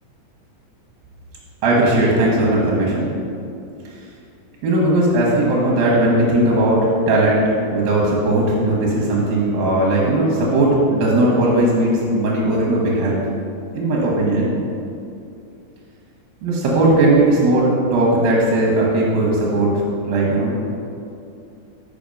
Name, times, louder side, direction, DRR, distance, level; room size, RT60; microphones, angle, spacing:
voice 1, 1.6-3.1 4.6-7.4 7.7-13.2 13.8-14.6 16.4-19.7 20.0-20.5, right 1 dB, 80° right, -4 dB, 2.8 m, -17 dB
5.9 x 5.1 x 5.2 m, 2.5 s
omnidirectional pair, 4.1 m